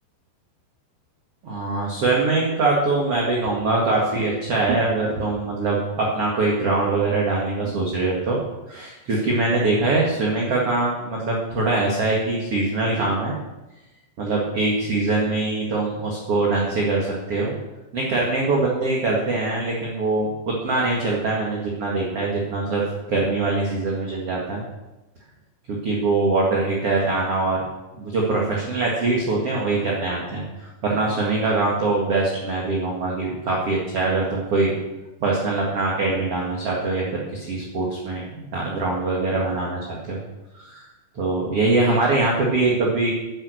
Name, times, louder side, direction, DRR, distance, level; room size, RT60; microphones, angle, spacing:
voice 1, 1.4-8.4 8.7-13.4 14.2-17.5 17.9-24.6 25.7-27.6 27.9-34.8 35.2-40.2 40.6-40.9 41.2-43.1, right 3 dB, 45° right, -3 dB, 2.2 m, -23 dB
11.0 x 10.0 x 6.4 m, 1.0 s
omnidirectional pair, 5.2 m